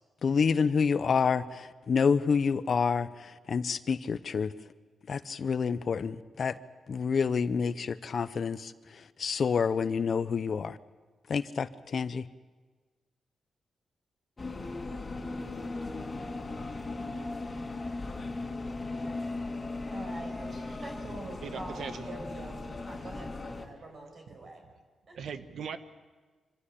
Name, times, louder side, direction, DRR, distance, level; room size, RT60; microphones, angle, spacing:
voice 1, 0.2-4.5 5.1-6.5 6.9-8.7 9.2-10.8 11.3-12.2, left 6 dB, 55° left, 14 dB, 0.7 m, -28 dB
sound 1, 14.4-23.7, left 2 dB, 25° left, 2.4 m, -37 dB
voice 2, 19.9-24.6 25.1-25.2, right 2 dB, 55° right, 2 dB, 6.2 m, -45 dB
voice 3, 21.4-22.1 25.1-25.8, right 6 dB, 75° right, 10 dB, 1.2 m, -39 dB
26.0 x 15.5 x 8.4 m, 1.4 s
cardioid pair, 100°, 0 cm